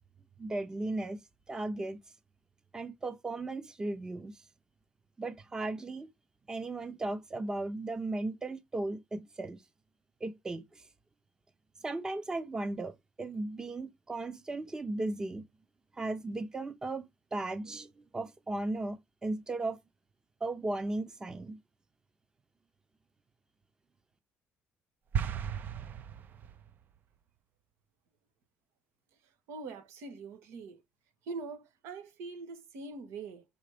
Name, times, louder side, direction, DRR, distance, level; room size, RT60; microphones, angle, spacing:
voice 1, 0.4-1.2 1.5-2.0 2.7-4.3 5.2-6.1 6.5-9.6 10.2-10.6 11.8-12.9 13.2-15.4 16.0-17.9 18.1-19.8 20.4-21.6, right 2 dB, 15° right, 0.8 m, -36 dB
sound 1, 25.1-26.8, right 8 dB, 45° right, 0.5 m, -35 dB
voice 2, 29.5-30.8 31.3-33.4, right 4 dB, 85° right, 1.8 m, -43 dB
6.5 x 4.1 x 5.1 m
cardioid pair, 150°, 4 cm